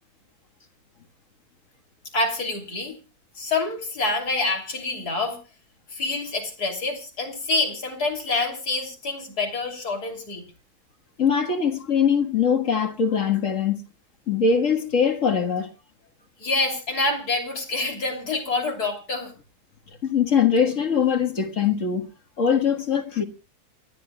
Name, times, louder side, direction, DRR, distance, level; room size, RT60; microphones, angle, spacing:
voice 1, 2.1-3.0 3.4-5.4 5.9-10.4 16.4-19.3, left 3 dB, 80° left, 3.6 m, -27 dB
voice 2, 11.2-13.8 14.3-15.7 20.0-22.1 22.4-23.2, left 6 dB, 55° left, 1.9 m, -22 dB
28.0 x 11.5 x 2.3 m
omnidirectional pair, 1.6 m